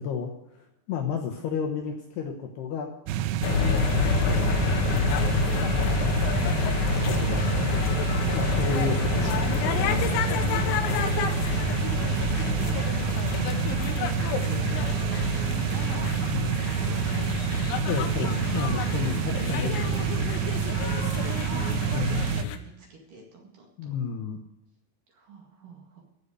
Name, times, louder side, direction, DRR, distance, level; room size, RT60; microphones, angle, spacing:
voice 1, 0.0-2.9 3.7-4.7 5.6-6.7 7.0-8.0 8.3-10.2 11.5-11.8 16.3-16.7 17.9-20.6 21.9-22.3 23.8-24.4, left 6 dB, 70° left, 3 dB, 2.6 m, -33 dB
voice 2, 1.1-1.5 9.2-9.7 13.4-15.5 15.9-16.1 16.8-17.3 21.4-21.8 22.6-23.7 25.1-26.0, right 3 dB, 50° right, 0 dB, 3.2 m, -46 dB
sound 1, 3.1-22.4, right 10 dB, 85° right, 2.8 m, -28 dB
sound 2, 3.4-22.6, left 7 dB, 90° left, 3.8 m, -28 dB
15.5 x 6.8 x 8.1 m, 0.89 s
omnidirectional pair, 5.9 m